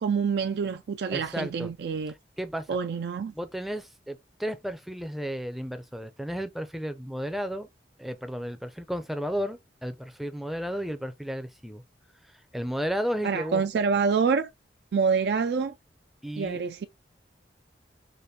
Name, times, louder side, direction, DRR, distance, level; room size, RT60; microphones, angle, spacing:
voice 1, 0.0-2.1 2.7-3.3 13.2-14.5 14.9-15.8 16.4-16.9, right 5 dB, 65° right, 0.3 m, -26 dB
voice 2, 1.1-1.7 2.4-2.8 3.3-7.7 8.0-11.8 12.5-13.6 16.2-16.6, equal, ahead, 0.5 m, -33 dB
5.0 x 2.5 x 2.8 m
head